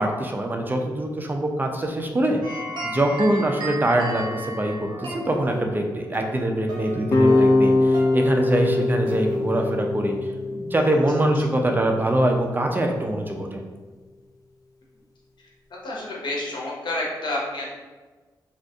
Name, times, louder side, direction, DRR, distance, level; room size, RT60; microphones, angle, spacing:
voice 1, 0.0-2.4 2.8-10.2 10.5-13.6, right 1 dB, 25° right, 2 dB, 0.5 m, -23 dB
sound 1, 2.4-9.9, right 1 dB, 70° right, 0.8 m, -36 dB
sound 2, 7.1-12.2, left 2 dB, 45° left, 0.5 m, -22 dB
voice 2, 15.8-17.6, left 1 dB, 70° left, -4 dB, 0.9 m, -29 dB
2.5 x 2.5 x 3.5 m, 1.3 s
cardioid pair, 60°, 8 cm